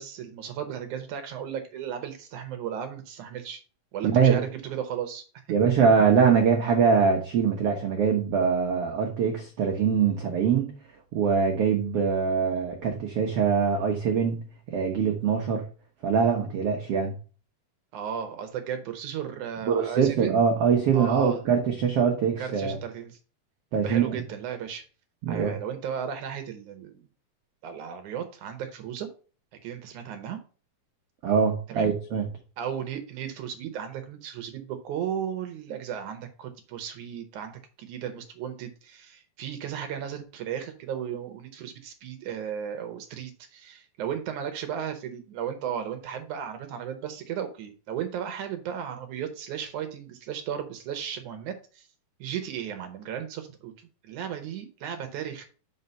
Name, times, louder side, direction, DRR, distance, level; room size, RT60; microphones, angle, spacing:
voice 1, 0.0-3.6 3.9-5.2 17.9-20.4 20.9-21.4 22.4-23.2 23.8-24.8 25.3-27.0 27.6-29.1 29.6-30.4 31.7-31.9 32.6-51.9 52.2-55.5, right 8 dB, 70° right, 2.0 m, -35 dB
voice 2, 4.0-4.4 5.5-10.7 11.1-15.6 16.0-17.1 19.7-22.8 23.7-24.2 25.2-25.5 31.2-32.2, right 6 dB, 85° right, 1.3 m, -23 dB
5.6 x 5.5 x 5.4 m
omnidirectional pair, 4.2 m